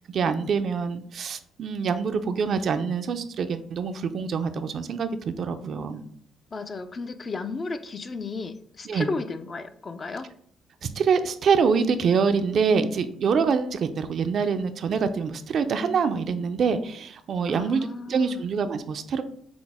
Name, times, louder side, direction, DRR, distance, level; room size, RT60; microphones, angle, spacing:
voice 1, 0.0-6.0 8.9-9.1 10.8-19.2, right 5 dB, 60° right, 9 dB, 0.3 m, -25 dB
voice 2, 6.5-10.3 17.5-18.5, left 3 dB, 35° left, 10 dB, 0.4 m, -34 dB
5.9 x 2.0 x 3.4 m, 0.64 s
cardioid pair, 90°, 0 cm